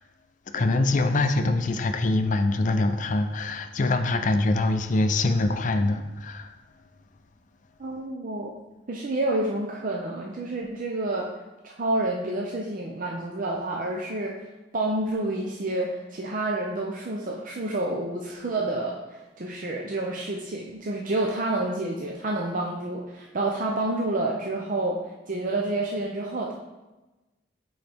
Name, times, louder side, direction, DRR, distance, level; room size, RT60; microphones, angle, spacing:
voice 1, 0.5-6.5, left 2 dB, 45° left, 7 dB, 0.5 m, -24 dB
voice 2, 7.8-8.5 8.9-11.3 11.6-14.4 14.7-25.0 25.3-26.5, right 2 dB, 45° right, -1 dB, 0.6 m, -29 dB
9.0 x 3.9 x 3.5 m, 1.1 s
head